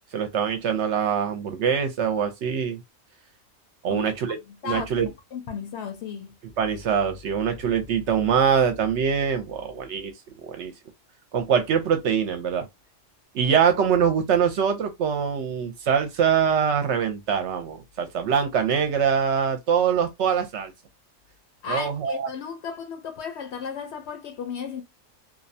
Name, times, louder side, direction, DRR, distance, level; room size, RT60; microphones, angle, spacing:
voice 1, 0.1-2.8 3.8-4.4 4.6-5.1 6.6-10.1 10.4-10.7 11.3-12.7 13.3-20.7 21.7-22.3, right 7 dB, 70° right, 0.8 m, -23 dB
voice 2, 4.6-6.3 21.6-24.8, left 6 dB, 65° left, 0.8 m, -34 dB
2.5 x 2.1 x 2.6 m
omnidirectional pair, 1.3 m